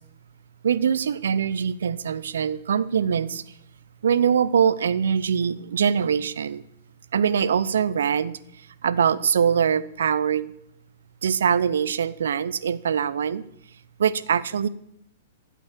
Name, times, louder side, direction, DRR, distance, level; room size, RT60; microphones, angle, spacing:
voice 1, 0.6-3.4 4.0-6.6 7.1-8.4 8.8-10.5 11.2-13.4 14.0-14.7, right 7 dB, 65° right, 18 dB, 0.7 m, -23 dB
14.0 x 8.2 x 7.5 m, 0.76 s
figure-of-eight pair, 110°, 0 cm